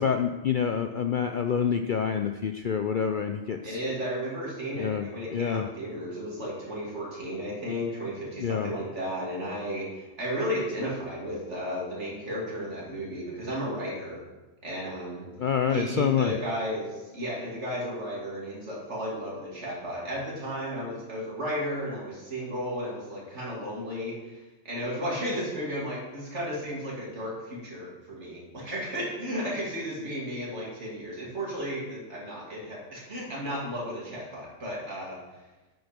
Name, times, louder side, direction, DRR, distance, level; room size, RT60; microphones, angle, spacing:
voice 1, 0.0-3.8 4.8-5.7 8.4-8.7 15.4-16.4, left 7 dB, 55° left, 7 dB, 0.5 m, -27 dB
voice 2, 3.6-14.2 14.6-15.3 15.7-35.2, equal, 60° right, -4 dB, 3.0 m, -34 dB
9.1 x 8.0 x 5.2 m, 1.1 s
omnidirectional pair, 1.3 m